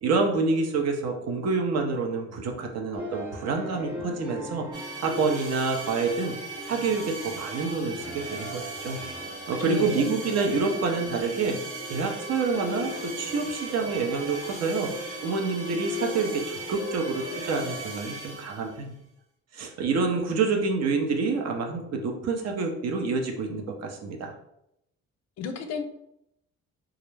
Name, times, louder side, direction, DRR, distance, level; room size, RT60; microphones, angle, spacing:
voice 1, 0.0-4.7 5.0-6.3 6.7-9.0 9.5-11.6 11.9-14.9 15.2-18.9 19.5-24.3, right 4 dB, 60° right, 2 dB, 0.6 m, -27 dB
sound 1, 3.0-17.8, left 1 dB, 5° right, 0.7 m, -39 dB
sound 2, 4.7-18.8, right 3 dB, 85° right, 1.1 m, -39 dB
voice 2, 9.6-10.2 25.4-25.8, left 5 dB, 65° left, 7 dB, 0.4 m, -33 dB
2.3 x 2.0 x 3.1 m, 0.80 s
cardioid pair, 90°, 30 cm